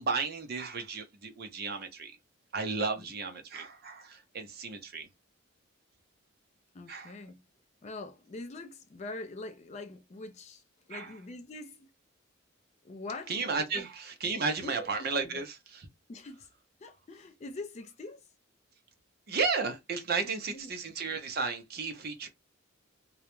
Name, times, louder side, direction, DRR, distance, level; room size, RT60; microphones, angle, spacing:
voice 1, 0.0-2.1 2.5-5.1 6.9-7.2 10.9-11.2 13.3-15.9 19.3-22.3, right 4 dB, 45° right, 0.5 m, -33 dB
voice 2, 6.7-7.4 7.8-10.6 10.9-11.9 12.8-13.4 13.7-13.9 14.3-15.4 16.1-16.5 16.8-18.2 20.2-20.7, left 2 dB, 30° left, 0.3 m, -44 dB
2.2 x 2.0 x 2.9 m
head